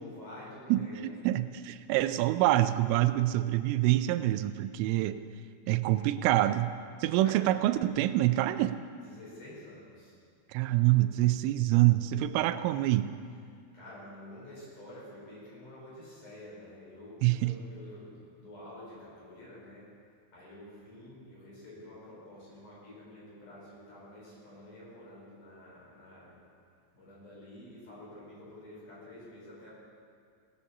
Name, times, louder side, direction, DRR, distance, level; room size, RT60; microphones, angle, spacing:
voice 1, 0.0-1.2 7.2-7.4 9.0-10.1 13.7-19.9 20.3-26.4 26.9-29.7, left 1 dB, 40° left, -7 dB, 6.0 m, -49 dB
voice 2, 0.7-5.2 5.7-6.7 7.0-8.8 10.5-13.1 17.2-17.6, right 15 dB, 90° right, 11 dB, 3.1 m, -26 dB
17.5 x 8.7 x 7.0 m, 2.2 s
omnidirectional pair, 5.6 m